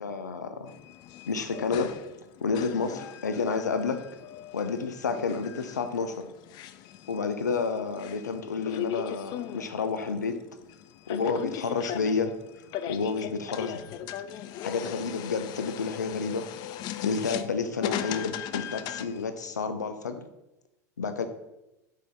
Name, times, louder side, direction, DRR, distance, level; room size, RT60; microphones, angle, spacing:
voice 1, 0.0-0.7 1.3-1.9 2.4-4.0 4.5-6.3 7.1-10.3 11.1-12.3 12.9-13.8 14.6-16.4 17.0-20.3 21.0-21.3, left 5 dB, 90° left, 9 dB, 0.6 m, -30 dB
sound 1, 0.7-19.2, left 11 dB, 50° left, 0.4 m, -38 dB
5.2 x 4.3 x 5.5 m, 0.94 s
hypercardioid pair, 85°, 9 cm